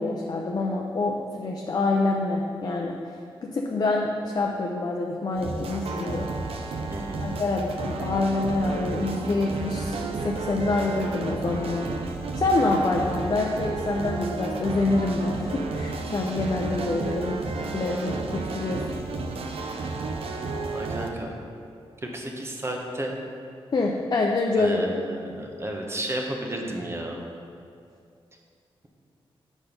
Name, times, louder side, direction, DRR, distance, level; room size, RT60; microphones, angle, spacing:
voice 1, 0.0-2.9 3.4-6.3 6.7-6.8 7.2-11.9 12.3-19.0 23.7-24.8, left 2 dB, 45° left, -1 dB, 0.5 m, -26 dB
sound 1, 5.4-21.1, right 3 dB, 80° right, 0.6 m, -32 dB
voice 2, 6.9-7.2 20.7-21.3 22.0-23.1 24.6-27.2, right 1 dB, 25° right, 1 dB, 0.9 m, -32 dB
7.1 x 4.3 x 5.2 m, 2.4 s
wide cardioid pair, 100°, 10 cm